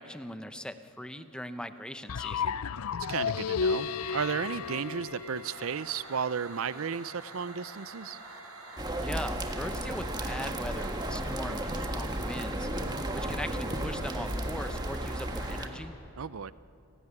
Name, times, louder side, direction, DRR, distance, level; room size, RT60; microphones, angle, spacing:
voice 1, 0.0-2.6 9.0-12.7 13.1-15.9, left 1 dB, 5° left, 9 dB, 0.8 m, -40 dB
sound 1, 2.1-6.0, left 6 dB, 80° left, 0.5 m, -32 dB
voice 2, 3.1-8.2 16.2-16.5, right 6 dB, 65° right, 16 dB, 0.5 m, -34 dB
sound 2, 3.7-15.7, right 2 dB, 85° right, 5.8 m, -47 dB
sound 3, 8.8-15.7, right 1 dB, 20° right, 1.6 m, -34 dB
29.5 x 16.5 x 9.8 m, 2.8 s
head